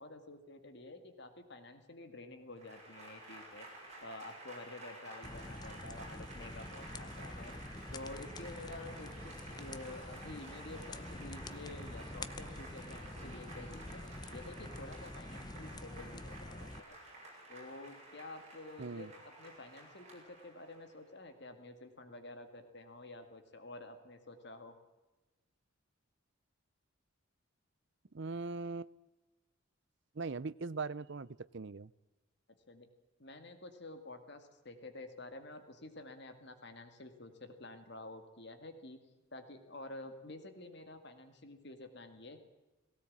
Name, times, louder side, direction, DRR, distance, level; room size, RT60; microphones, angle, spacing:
voice 1, 0.0-3.7 4.0-7.5 7.9-14.0 14.3-17.0 17.5-24.7 32.7-32.9 33.2-39.0 39.3-42.4, left 2 dB, 50° left, 8 dB, 2.1 m, -50 dB
Applause / Crowd, 2.5-21.1, right 1 dB, 30° right, 7.2 m, -52 dB
sound 1, 5.2-16.8, left 2 dB, 20° left, 0.7 m, -47 dB
voice 2, 18.8-19.1 28.1-28.9 30.1-31.9, right 4 dB, 55° right, 19 dB, 0.6 m, -40 dB
19.0 x 17.5 x 8.7 m, 1.1 s
head